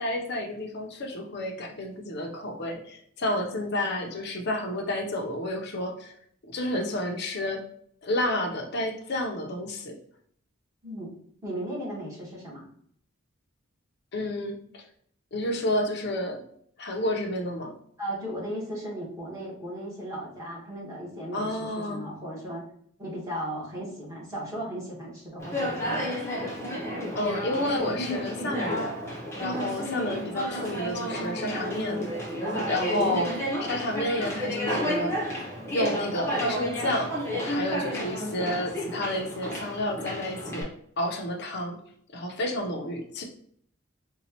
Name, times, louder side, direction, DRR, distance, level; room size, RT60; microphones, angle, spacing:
voice 1, 0.0-6.1 6.4-7.6 8.0-10.0 14.1-14.8 15.3-16.4 16.8-17.7 21.3-22.0 27.1-29.0 29.4-32.1 32.6-33.3 33.6-35.2 35.7-37.1 37.4-40.7 41.0-41.8 42.1-43.2, left 1 dB, 50° left, 2 dB, 0.6 m, -30 dB
voice 2, 10.8-11.1 11.4-12.7 18.0-22.6 23.0-26.2, right 1 dB, 15° right, -6 dB, 1.2 m, -36 dB
Conversation, 25.4-40.6, equal, 15° left, 0.8 m, -31 dB
4.1 x 2.3 x 2.8 m, 0.63 s
head